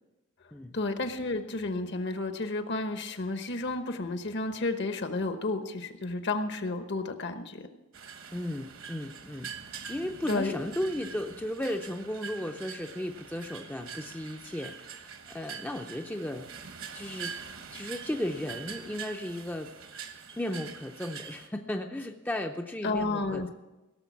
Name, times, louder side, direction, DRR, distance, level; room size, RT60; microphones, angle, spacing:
voice 1, 0.7-7.7 10.3-10.6 22.8-23.5, left 2 dB, 55° left, 8 dB, 1.0 m, -31 dB
sound 1, 7.9-21.5, right 6 dB, 65° right, 1.2 m, -44 dB
voice 2, 8.3-9.5 9.9-16.6 16.9-17.3 17.7-19.7 20.3-23.5, left 1 dB, 10° left, 4 dB, 0.5 m, -35 dB
16.5 x 6.8 x 7.1 m, 1.0 s
head